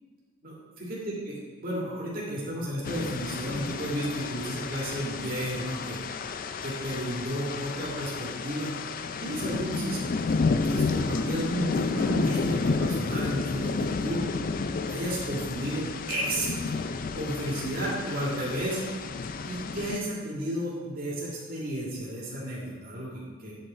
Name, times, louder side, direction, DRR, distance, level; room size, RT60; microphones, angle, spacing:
voice 1, 0.4-1.0 1.6-6.0 6.6-8.7 9.2-14.2 14.9-16.8 17.2-18.8 19.4-23.5, right 1 dB, 45° right, -5 dB, 2.7 m, -32 dB
sound 1, 2.8-20.0, left 4 dB, 45° left, 0.4 m, -31 dB
9.6 x 5.8 x 4.4 m, 1.4 s
head